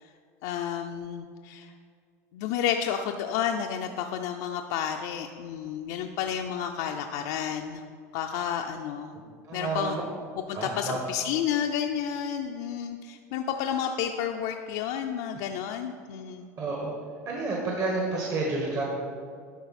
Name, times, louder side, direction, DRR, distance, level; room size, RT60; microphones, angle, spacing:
voice 1, 0.4-1.7 2.3-7.8 8.1-9.1 9.5-10.0 10.4-16.5, left 8 dB, 65° left, 3 dB, 0.4 m, -31 dB
voice 2, 9.4-9.9 10.5-11.0 16.6-16.9 17.2-18.8, right 3 dB, 45° right, -2 dB, 1.3 m, -30 dB
11.5 x 3.9 x 4.2 m, 2.2 s
supercardioid pair, 105°, 8 cm